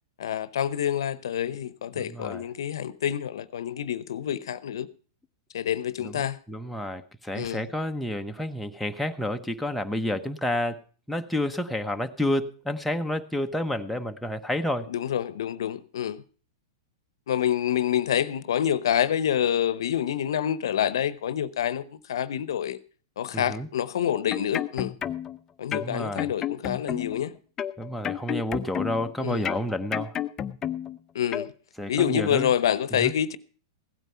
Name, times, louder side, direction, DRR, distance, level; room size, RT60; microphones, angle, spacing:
voice 1, 0.2-4.9 5.5-6.4 7.3-7.6 14.9-16.2 17.3-22.8 23.2-24.9 25.6-27.3 29.2-29.5 31.1-31.5 31.9-33.4, left 9 dB, 75° left, 0.8 m, -27 dB
voice 2, 1.9-2.4 6.0-10.8 11.1-14.9 23.3-23.7 25.7-26.3 27.8-30.2 31.8-32.5 33.0-33.1, left 1 dB, ahead, 0.9 m, -30 dB
sound 1, 24.1-25.4 25.7-27.2 27.6-29.1 29.4-31.0 31.3-31.5, left 10 dB, 25° left, 0.7 m, -31 dB
16.0 x 9.2 x 5.7 m
hypercardioid pair, 120°, 2 cm